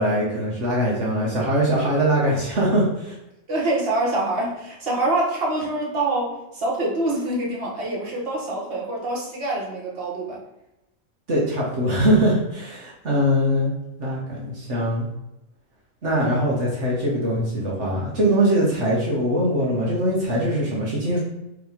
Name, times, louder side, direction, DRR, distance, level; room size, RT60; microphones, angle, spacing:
voice 1, 0.0-3.1 11.3-13.7 14.0-15.1 16.0-21.2, equal, 65° right, -5 dB, 1.7 m, -22 dB
voice 2, 3.5-10.4, right 2 dB, 50° right, -5 dB, 1.8 m, -25 dB
6.1 x 3.1 x 5.1 m, 0.93 s
omnidirectional pair, 1.3 m